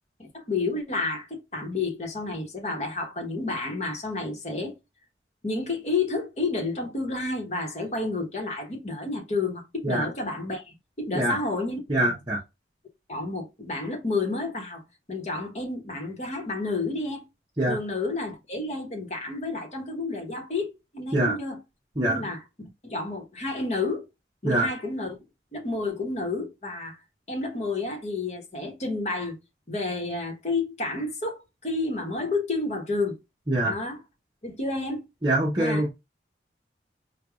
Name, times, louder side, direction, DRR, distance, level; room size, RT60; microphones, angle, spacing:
voice 1, 0.2-4.8 5.4-11.8 13.1-14.8 15.1-17.3 17.7-21.6 22.0-22.4 22.8-24.0 24.4-25.2 25.5-27.0 27.3-29.4 29.7-33.2 33.6-34.0 34.4-35.0 35.6-35.8, left 3 dB, 40° left, 1.1 m, -30 dB
voice 2, 11.9-12.4 17.6-17.8 21.1-21.3 22.0-22.2 24.4-24.7 33.5-33.7 35.2-35.9, right 1 dB, 25° right, 0.9 m, -24 dB
4.6 x 2.3 x 2.4 m
head